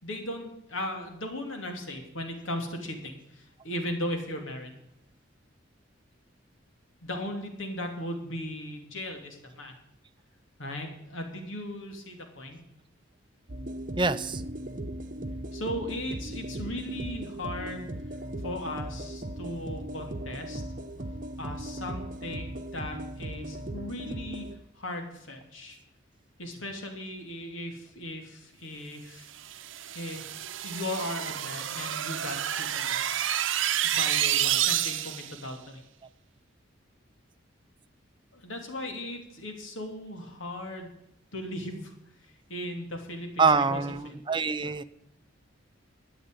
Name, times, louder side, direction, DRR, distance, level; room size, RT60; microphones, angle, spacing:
voice 1, 0.0-4.8 7.0-9.7 10.6-12.6 15.5-17.9 18.4-20.6 21.4-24.5 24.7-25.8 26.4-29.3 29.9-33.1 33.8-35.8 38.3-40.9 41.3-41.9 42.5-44.1, left 1 dB, 80° left, 3 dB, 2.9 m, -37 dB
sound 1, 13.5-24.6, right 1 dB, 40° right, 1.1 m, -38 dB
voice 2, 14.0-14.4 43.4-44.8, right 4 dB, 25° right, 10 dB, 0.7 m, -25 dB
sound 2, 29.4-35.4, right 11 dB, 75° right, 0.7 m, -29 dB
12.5 x 8.1 x 9.3 m, 0.79 s
head